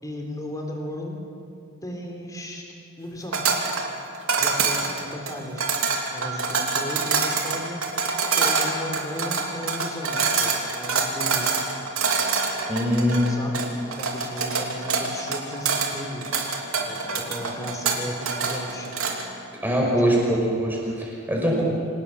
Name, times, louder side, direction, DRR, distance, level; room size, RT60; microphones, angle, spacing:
voice 1, 0.0-1.2 1.8-2.7 3.0-3.6 4.4-5.8 6.1-7.8 8.3-11.5 12.9-16.3 16.8-19.0 19.9-20.3, equal, 15° left, 1 dB, 3.5 m, -35 dB
sound 1, 3.3-19.3, right 5 dB, 75° right, 3.1 m, -25 dB
voice 2, 12.7-13.2 19.6-21.6, equal, 10° right, -3 dB, 6.0 m, -22 dB
26.5 x 18.5 x 7.4 m, 2.5 s
head